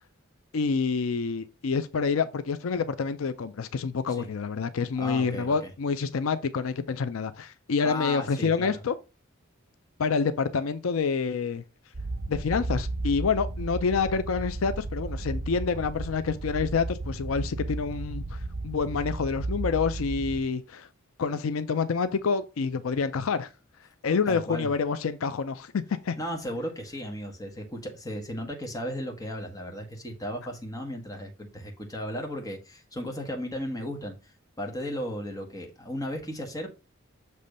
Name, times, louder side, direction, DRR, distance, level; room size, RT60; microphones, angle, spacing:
voice 1, 0.5-9.0 10.0-11.6 12.3-18.4 18.6-20.9 21.2-23.5 24.0-26.2, left 5 dB, 80° left, 0.5 m, -27 dB
voice 2, 5.0-5.7 7.8-8.7 24.3-24.7 26.2-36.7, equal, 20° left, 1.5 m, -35 dB
sound 1, 11.9-20.4, right 2 dB, 65° right, 1.0 m, -34 dB
6.8 x 3.2 x 5.2 m
head